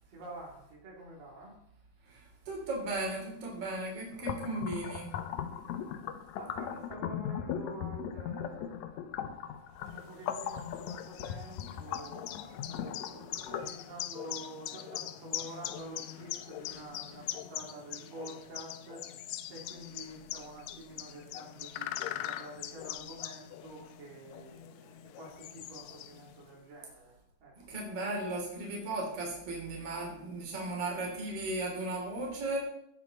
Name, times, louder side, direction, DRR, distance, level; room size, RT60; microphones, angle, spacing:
voice 1, 0.1-1.6 5.5-5.9 6.4-9.3 9.9-27.7, right 2 dB, 85° right, -3 dB, 5.3 m, -48 dB
voice 2, 2.1-5.1 27.7-32.6, right 2 dB, 45° right, -1 dB, 4.4 m, -36 dB
sound 1, 4.1-13.7, left 9 dB, 70° left, 1.9 m, -39 dB
sound 2, 9.9-26.5, left 13 dB, 85° left, 2.4 m, -42 dB
16.5 x 9.1 x 4.3 m, 0.73 s
omnidirectional pair, 3.8 m